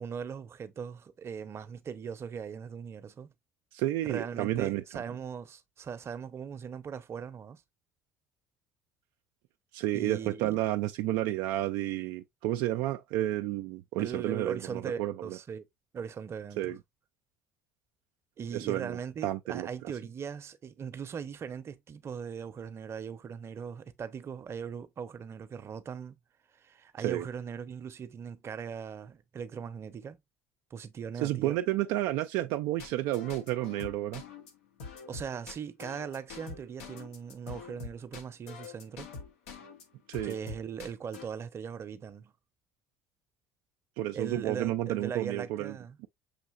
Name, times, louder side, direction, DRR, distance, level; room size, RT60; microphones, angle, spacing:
voice 1, 0.0-3.3 4.1-7.6 9.9-10.6 14.0-15.6 15.9-16.7 18.4-26.2 26.5-30.2 30.7-31.6 35.1-39.1 40.2-42.3 44.1-46.0, right 7 dB, 40° right, 0.7 m, -39 dB
voice 2, 3.7-5.0 9.7-15.4 16.6-16.8 18.5-19.9 27.0-27.3 31.2-34.2 40.1-40.4 44.0-45.8, right 14 dB, 70° right, 0.3 m, -31 dB
sound 1, 32.8-39.8 40.1-41.3, left 5 dB, 85° left, 1.0 m, -45 dB
6.4 x 2.8 x 2.4 m
hypercardioid pair, 75°, 7 cm